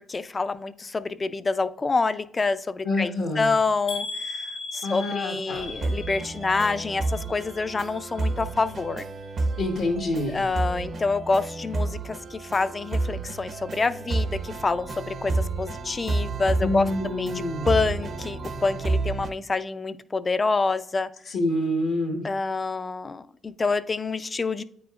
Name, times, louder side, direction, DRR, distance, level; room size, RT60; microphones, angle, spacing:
voice 1, 0.1-9.1 10.3-21.1 22.2-24.6, left 3 dB, 30° left, 13 dB, 0.4 m, -27 dB
voice 2, 2.8-3.5 4.8-5.7 9.6-10.4 16.6-17.7 21.3-22.2, left 1 dB, 80° left, 0 dB, 1.1 m, -27 dB
sound 1, 3.9-7.8 8.1-8.8 9.2-9.4 9.7-9.8, left 3 dB, 55° left, 0.9 m, -38 dB
sound 2, 5.5-19.3, right 3 dB, 50° right, 0.7 m, -30 dB
9.1 x 5.0 x 2.4 m, 0.70 s
cardioid pair, 90°, 0 cm